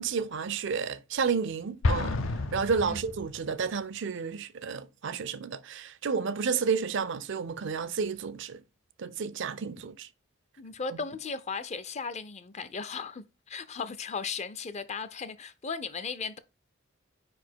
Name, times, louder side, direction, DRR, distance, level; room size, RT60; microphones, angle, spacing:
voice 1, 0.0-8.6 9.0-10.1, right 5 dB, 65° right, 0.5 m, -31 dB
Explosion, 1.8-3.7, left 2 dB, 75° left, 0.6 m, -30 dB
voice 2, 10.6-16.4, left 5 dB, 35° left, 0.5 m, -36 dB
5.0 x 4.2 x 4.5 m
head